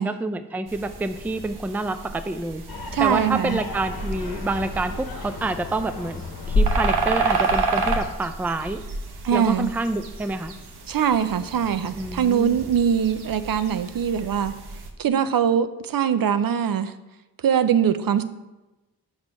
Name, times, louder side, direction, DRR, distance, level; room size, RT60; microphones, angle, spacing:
voice 1, 0.0-2.6 3.0-6.2 6.5-8.8 9.3-10.5 12.0-12.6, right 2 dB, 5° right, 10 dB, 0.4 m, -27 dB
sound 1, 0.7-14.9, right 4 dB, 85° right, 0.8 m, -31 dB
sound 2, 2.7-8.1, left 2 dB, 65° left, 0.9 m, -29 dB
voice 2, 2.9-3.6 9.2-9.7 10.9-14.5 15.0-16.9 17.4-18.2, right 8 dB, 65° right, 11 dB, 0.5 m, -22 dB
6.0 x 4.3 x 5.3 m, 1.0 s
cardioid pair, 55°, 38 cm